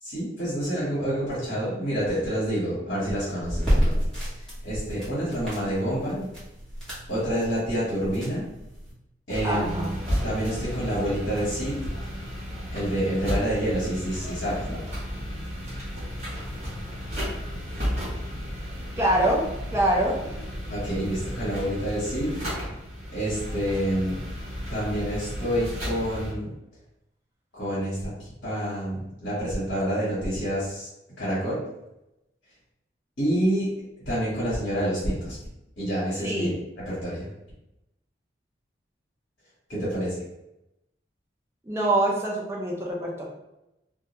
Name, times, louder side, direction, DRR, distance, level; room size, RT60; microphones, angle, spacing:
voice 1, 0.0-6.3 7.1-8.5 9.3-9.9 10.2-11.9 12.7-14.8 20.7-22.3 23.1-24.2 24.7-26.5 27.5-30.9 31.2-31.6 33.2-33.7 34.0-35.4 35.8-37.3 39.7-40.2, equal, 60° left, -9 dB, 1.0 m, -28 dB
sound 1, 3.4-8.9, equal, 5° left, 0.9 m, -30 dB
sound 2, 9.3-26.3, equal, 35° right, 0.9 m, -33 dB
voice 2, 9.4-10.0 19.0-19.4 19.7-20.2 36.2-36.6 41.6-43.2, right 1 dB, 15° right, -3 dB, 0.5 m, -24 dB
2.2 x 2.2 x 2.9 m, 0.89 s
head